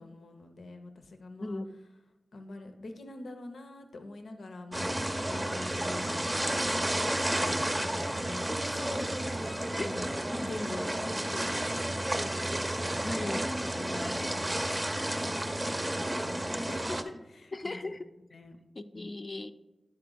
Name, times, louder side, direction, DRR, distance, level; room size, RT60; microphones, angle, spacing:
voice 1, 0.0-1.6 2.3-10.1 10.4-12.3 13.6-18.0 18.3-18.6 18.9-19.1, left 2 dB, 90° left, 6 dB, 0.6 m, -45 dB
sound 1, 4.7-17.0, right 1 dB, 25° right, 0.6 m, -31 dB
voice 2, 13.0-13.5 17.5-18.0 18.8-19.5, left 2 dB, 45° left, 8 dB, 0.4 m, -37 dB
10.0 x 4.1 x 3.9 m, 1.0 s
cardioid pair, 50°, 0 cm